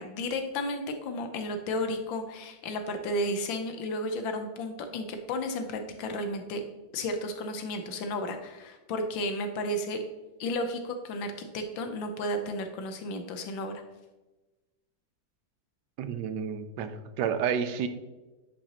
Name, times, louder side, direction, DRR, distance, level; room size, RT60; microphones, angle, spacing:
voice 1, 0.0-6.6 6.9-10.0 10.4-13.7, left 1 dB, 90° left, 6 dB, 1.6 m, -33 dB
voice 2, 16.0-17.9, right 7 dB, 70° right, 10 dB, 1.2 m, -30 dB
9.9 x 5.5 x 2.9 m, 1.1 s
omnidirectional pair, 2.0 m